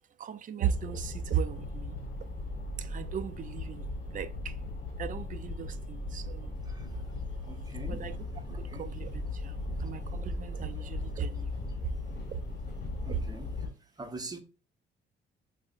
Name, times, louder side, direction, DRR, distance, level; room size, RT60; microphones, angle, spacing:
voice 1, 0.2-1.9 2.8-3.8 4.1-4.3 5.0-6.5 7.9-8.1 8.6-9.1 9.4-11.5 13.1-13.2, right 7 dB, 40° right, 0.4 m, -35 dB
sound 1, 0.6-13.7, left 2 dB, 50° left, 1.0 m, -38 dB
voice 2, 7.5-8.1 8.5-8.9 13.0-13.5 14.0-14.4, right 3 dB, 20° right, 0.7 m, -43 dB
6.0 x 2.0 x 2.4 m
cardioid pair, 90°, 20 cm